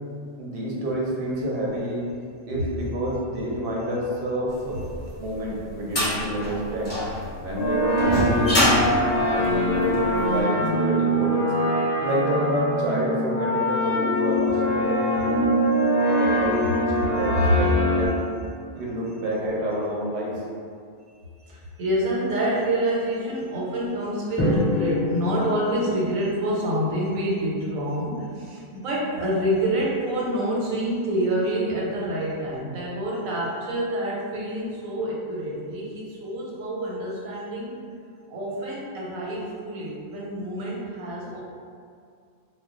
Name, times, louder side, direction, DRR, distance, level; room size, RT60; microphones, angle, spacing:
voice 1, 0.4-2.0 2.5-4.8 5.2-6.9 7.4-8.6 9.3-11.5 12.0-15.5 16.1-16.5 17.0-18.3 18.7-20.3, equal, 55° right, -4 dB, 0.7 m, -28 dB
sound 1, 4.9-10.2, left 1 dB, 30° left, 0.8 m, -25 dB
sound 2, 7.6-18.1, equal, 60° left, 0.7 m, -23 dB
voice 2, 21.4-37.8 38.3-41.4, right 1 dB, 90° right, -5 dB, 1.1 m, -27 dB
Drum, 24.4-26.5, left 2 dB, ahead, 0.8 m, -27 dB
2.3 x 2.1 x 3.6 m, 2.3 s
omnidirectional pair, 1.4 m